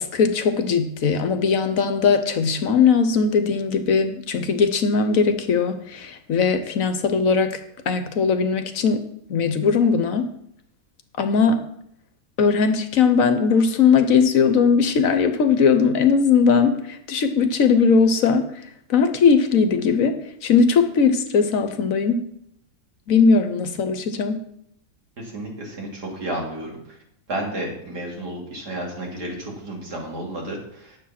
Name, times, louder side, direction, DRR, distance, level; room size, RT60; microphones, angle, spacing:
voice 1, 0.0-7.6 7.9-9.0 9.3-10.3 11.2-11.7 12.4-18.5 18.9-22.3 23.1-24.4, left 5 dB, 60° left, 9 dB, 1.2 m, -19 dB
voice 2, 25.2-27.0 27.3-31.0, right 1 dB, 85° right, -1 dB, 3.3 m, -32 dB
10.0 x 7.3 x 5.8 m, 0.73 s
omnidirectional pair, 1.7 m